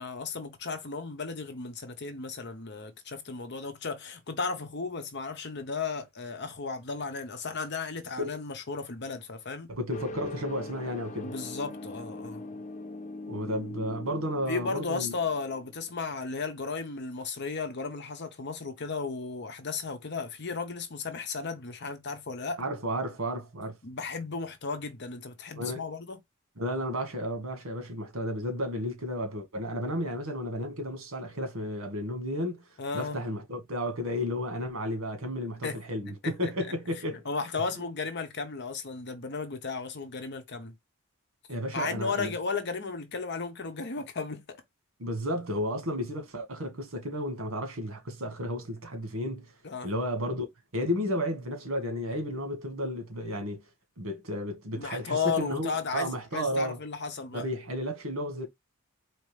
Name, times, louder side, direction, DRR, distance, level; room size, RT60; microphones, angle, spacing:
voice 1, 0.0-9.7 11.2-12.6 14.5-22.6 23.8-26.2 32.8-33.2 35.6-35.8 36.2-36.5 37.1-40.7 41.7-44.6 49.6-49.9 54.7-57.4, left 4 dB, 55° left, 1.0 m, -35 dB
voice 2, 9.7-11.3 13.3-15.1 22.6-23.8 25.6-25.8 26.6-32.6 32.9-37.2 41.5-42.3 45.0-49.5 49.8-50.4 50.7-53.6 54.0-56.8 57.3-58.5, equal, 80° right, 1.6 m, -32 dB
sound 1, 9.9-16.3, left 2 dB, 35° left, 0.7 m, -42 dB
4.2 x 3.0 x 3.3 m
head